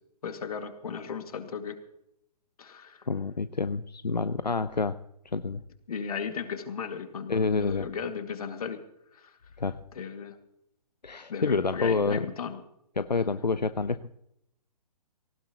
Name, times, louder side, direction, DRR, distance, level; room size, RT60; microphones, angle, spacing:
voice 1, 0.2-1.8 2.6-3.0 5.9-8.8 9.1-9.3 9.9-10.4 11.3-12.6, left 6 dB, 60° left, 7 dB, 2.2 m, -36 dB
voice 2, 3.1-5.0 5.3-5.6 7.3-7.9 9.6-9.8 11.0-12.3 13.0-14.2, left 4 dB, 90° left, 13 dB, 0.7 m, -28 dB
19.5 x 18.0 x 3.0 m, 0.77 s
figure-of-eight pair, 125°, 21 cm